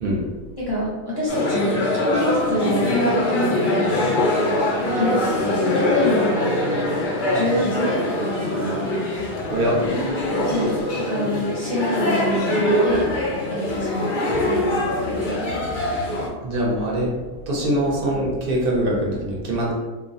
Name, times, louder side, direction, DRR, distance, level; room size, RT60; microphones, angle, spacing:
voice 1, 0.6-4.2 4.8-6.6 7.3-8.9 10.4-13.1 13.5-15.4, equal, 25° left, -9 dB, 0.6 m, -26 dB
sound 1, 1.3-16.3, left 1 dB, 70° left, 0.4 m, -23 dB
voice 2, 16.4-17.2 17.5-19.7, right 1 dB, 55° right, -3 dB, 0.6 m, -23 dB
2.2 x 2.1 x 2.6 m, 1.2 s
omnidirectional pair, 1.4 m